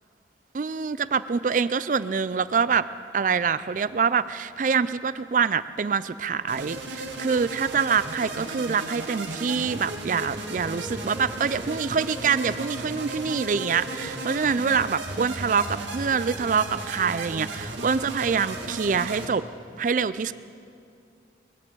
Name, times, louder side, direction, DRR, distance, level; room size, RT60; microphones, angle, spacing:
voice 1, 0.5-2.8 3.1-19.4 19.8-20.3, right 6 dB, 45° right, 15 dB, 0.4 m, -25 dB
sound 1, 6.5-19.3, right 2 dB, 90° right, 1.8 m, -35 dB
22.5 x 7.6 x 7.9 m, 2.4 s
head